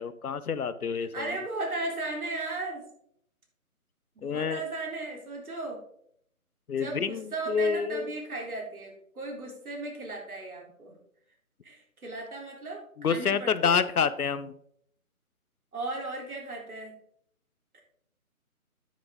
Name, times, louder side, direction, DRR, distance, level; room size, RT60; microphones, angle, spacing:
voice 1, 0.0-1.4 4.2-4.6 6.7-8.1 13.0-14.5, left 6 dB, 80° left, 14 dB, 0.9 m, -28 dB
voice 2, 1.0-2.8 4.2-5.8 6.8-10.9 11.6-12.8 13.1-13.8 15.7-16.9 17.7-17.8, right 2 dB, 75° right, 0 dB, 3.7 m, -36 dB
9.8 x 7.3 x 3.7 m, 0.68 s
hypercardioid pair, 165°, 44 cm